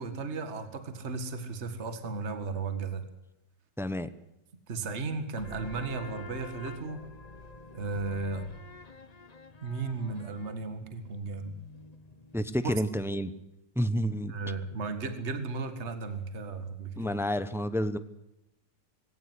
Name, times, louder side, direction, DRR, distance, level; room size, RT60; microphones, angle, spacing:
voice 1, 0.0-3.0 4.7-7.0 7.7-8.5 9.6-11.5 12.6-12.7 14.3-17.1, right 4 dB, 40° right, 9 dB, 2.1 m, -35 dB
voice 2, 3.8-4.1 12.3-13.3 13.8-14.3 17.0-18.0, equal, 5° right, 12 dB, 0.4 m, -29 dB
sound 1, 5.4-12.7, left 3 dB, 25° left, 1.1 m, -48 dB
21.0 x 17.5 x 9.8 m, 0.88 s
omnidirectional pair, 1.9 m